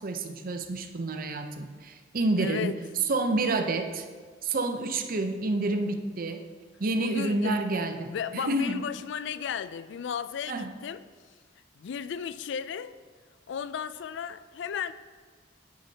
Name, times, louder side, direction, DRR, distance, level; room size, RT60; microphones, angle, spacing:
voice 1, 0.0-2.7 3.1-4.1 4.4-6.4 6.8-8.8 10.5-10.7, right 2 dB, 50° right, 0.7 m, -29 dB
voice 2, 2.4-2.8 7.0-7.6 8.1-11.0 11.8-12.9 13.5-14.9, left 7 dB, 70° left, 0.3 m, -34 dB
9.5 x 9.1 x 2.8 m
head